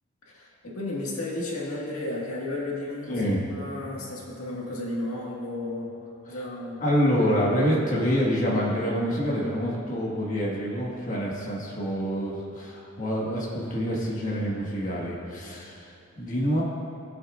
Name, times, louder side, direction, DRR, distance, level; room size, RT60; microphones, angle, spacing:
voice 1, 0.3-5.9 6.3-6.8 7.2-7.3, left 2 dB, 85° left, -3 dB, 1.8 m, -33 dB
voice 2, 3.1-3.4 6.3-6.4 6.8-16.6, equal, 35° left, -5 dB, 1.6 m, -27 dB
19.5 x 7.9 x 2.5 m, 2.7 s
head